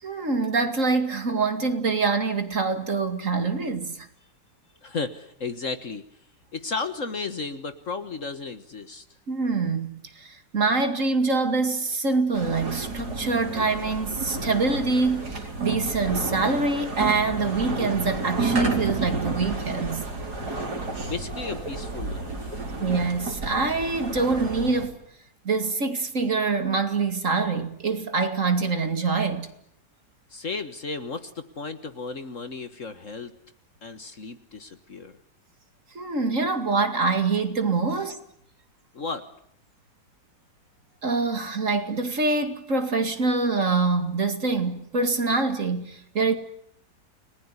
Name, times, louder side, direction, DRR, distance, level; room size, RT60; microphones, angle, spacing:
voice 1, 0.0-4.1 9.3-20.1 22.8-25.0 25.4-29.5 35.9-38.2 41.0-46.4, right 4 dB, 45° right, 2.6 m, -25 dB
voice 2, 4.8-6.0 6.5-9.0 21.1-22.6 30.3-33.3 33.8-35.2 37.9-38.0 38.9-39.3, left 4 dB, 45° left, 1.7 m, -34 dB
sound 1, 12.3-24.9, right 3 dB, 60° right, 5.0 m, -31 dB
30.0 x 20.0 x 9.8 m
omnidirectional pair, 1.9 m